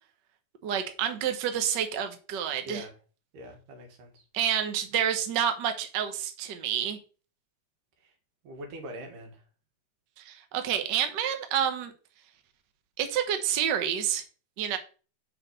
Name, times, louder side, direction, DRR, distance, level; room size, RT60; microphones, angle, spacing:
voice 1, 0.6-2.8 4.3-7.0 10.2-11.9 13.0-14.2 14.6-14.8, right 9 dB, 65° right, 7 dB, 1.1 m, -28 dB
voice 2, 2.6-2.9 3.3-4.2 8.0-8.1 8.4-9.4, equal, 90° right, 4 dB, 3.3 m, -43 dB
5.9 x 5.1 x 6.7 m, 0.36 s
omnidirectional pair, 3.6 m